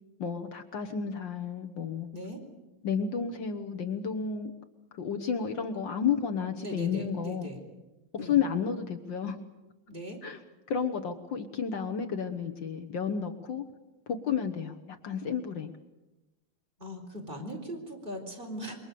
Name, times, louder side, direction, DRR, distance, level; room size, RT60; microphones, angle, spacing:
voice 1, 0.2-2.1 2.8-4.5 4.9-7.5 8.1-9.4 10.2-10.4 10.7-13.6 14.1-15.7, left 7 dB, 65° left, 6 dB, 1.9 m, -31 dB
voice 2, 6.6-7.7 8.1-8.4 9.9-10.2 16.8-18.7, equal, 25° right, 1 dB, 4.6 m, -40 dB
27.0 x 23.5 x 6.9 m, 1.0 s
omnidirectional pair, 2.3 m